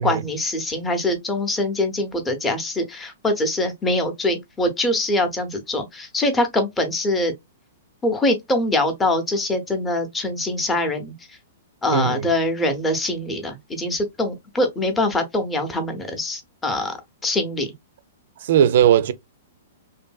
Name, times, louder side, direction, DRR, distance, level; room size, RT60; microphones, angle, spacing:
voice 1, 0.0-7.3 8.0-11.1 11.8-17.0 17.2-17.7, left 1 dB, 15° left, 0.7 m, -23 dB
voice 2, 11.9-12.3 18.4-19.1, right 10 dB, 65° right, 0.4 m, -18 dB
2.7 x 2.5 x 2.3 m
hypercardioid pair, 125°, 0 cm